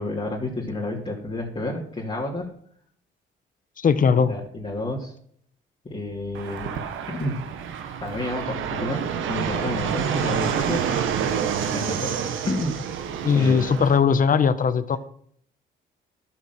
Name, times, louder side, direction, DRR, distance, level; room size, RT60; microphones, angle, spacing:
voice 1, 0.0-2.5 4.1-5.1 5.8-7.4 8.0-11.3 11.7-12.1 12.4-12.8 13.3-13.7, left 1 dB, 25° left, -5 dB, 2.8 m, -30 dB
voice 2, 3.8-4.3 13.2-15.0, left 6 dB, 45° left, 12 dB, 1.1 m, -19 dB
Fixed-wing aircraft airplane, 6.3-14.0, right 8 dB, 85° right, 1.4 m, -28 dB
11.5 x 7.6 x 6.1 m, 0.63 s
cardioid pair, 90°, 20 cm